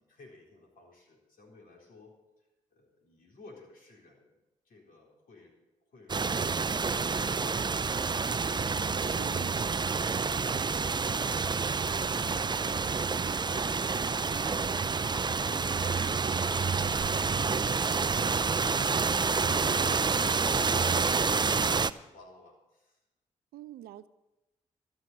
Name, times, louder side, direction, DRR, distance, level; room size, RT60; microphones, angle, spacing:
voice 1, 0.0-4.4 4.6-5.6 5.8-6.2, left 2 dB, 65° left, -1 dB, 4.1 m, -56 dB
sound 1, 6.1-21.9, right 5 dB, 30° right, 0.5 m, -28 dB
voice 2, 9.0-9.8 23.5-24.1, right 13 dB, 80° right, 16 dB, 0.5 m, -45 dB
13.5 x 6.3 x 9.6 m, 1.0 s
hypercardioid pair, 40°, 16 cm